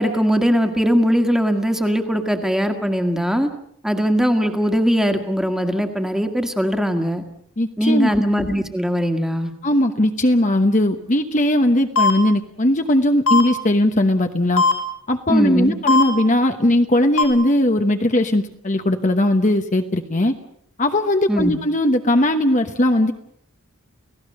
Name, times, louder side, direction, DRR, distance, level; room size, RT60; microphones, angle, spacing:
voice 1, 0.0-3.5 3.8-7.2 7.8-9.5 15.3-15.7 21.3-21.5, equal, ahead, 5 dB, 1.8 m, -20 dB
voice 2, 7.6-8.1 9.6-14.6 15.1-20.3 20.8-23.1, left 1 dB, 35° left, 6 dB, 1.1 m, -18 dB
sound 1, 12.0-12.1 13.3-13.4 14.6-14.7 15.9-16.0 17.2-17.3, left 4 dB, 85° left, 5.9 m, -15 dB
30.0 x 17.0 x 6.6 m, 0.70 s
head